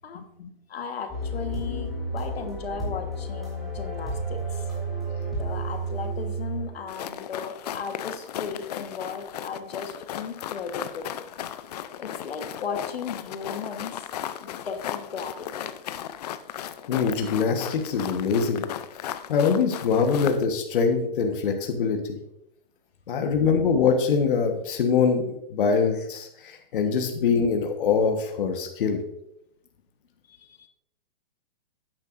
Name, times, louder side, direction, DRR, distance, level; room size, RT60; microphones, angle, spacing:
voice 1, 0.1-0.5 16.9-18.6 19.3-22.2 23.1-29.0, left 5 dB, 60° left, 4 dB, 1.3 m, -24 dB
voice 2, 0.7-4.7 5.3-11.1 12.0-14.1 14.4-15.7 30.3-30.7, left 6 dB, 85° left, 6 dB, 1.4 m, -36 dB
sound 1, 1.1-7.2, right 2 dB, ahead, 3.0 m, -31 dB
sound 2, 6.9-20.5, left 10 dB, 45° left, 0.5 m, -36 dB
10.5 x 9.0 x 2.6 m, 0.81 s
hypercardioid pair, 155°, 30 cm